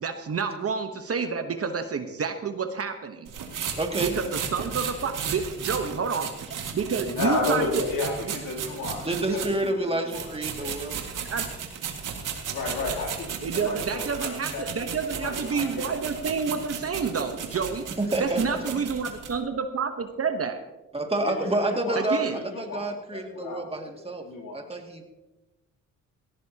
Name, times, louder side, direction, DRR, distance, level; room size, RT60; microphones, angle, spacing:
voice 1, 0.0-3.3 4.0-6.3 6.7-7.9 9.3-9.4 11.1-11.5 13.4-17.9 18.2-20.6 22.0-22.3, right 5 dB, 45° right, 7 dB, 1.1 m, -29 dB
sound 1, 3.3-9.7 10.1-19.3, right 7 dB, 75° right, 2.0 m, -35 dB
voice 2, 3.8-4.2 9.0-11.1 18.0-18.6 20.9-24.3 24.5-25.0, right 2 dB, 20° right, 3 dB, 2.3 m, -29 dB
voice 3, 7.0-10.7 12.5-16.0 21.2-22.1 22.3-24.6, left 3 dB, 85° left, -1 dB, 3.2 m, -33 dB
18.0 x 14.5 x 2.9 m, 1.1 s
cardioid pair, 65°, 32 cm